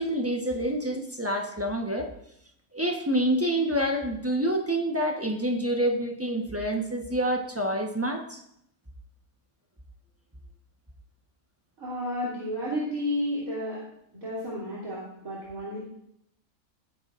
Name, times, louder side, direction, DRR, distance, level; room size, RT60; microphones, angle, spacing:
voice 1, 0.0-2.1 2.7-8.4, right 1 dB, 10° right, 2 dB, 1.1 m, -27 dB
voice 2, 11.8-13.8 14.1-15.8, left 1 dB, 75° right, -8 dB, 3.6 m, -32 dB
18.0 x 9.6 x 2.6 m, 0.74 s
omnidirectional pair, 1.5 m